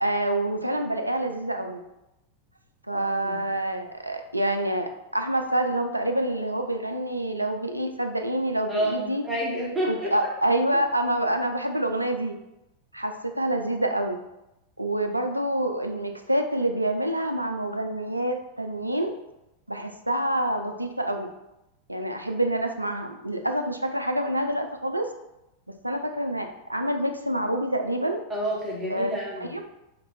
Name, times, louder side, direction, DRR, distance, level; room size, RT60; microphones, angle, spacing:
voice 1, 0.0-1.8 2.9-9.2 9.9-12.4 12.9-14.2 14.8-19.1 19.7-21.3 21.9-25.1 25.8-28.2 28.9-29.1 29.4-29.6, right 1 dB, 85° right, 5 dB, 0.4 m, -27 dB
voice 2, 2.9-3.4 8.7-10.1 28.3-29.5, right 1 dB, 10° right, -5 dB, 1.3 m, -29 dB
2.9 x 2.9 x 4.1 m, 0.89 s
figure-of-eight pair, 90°, 0 cm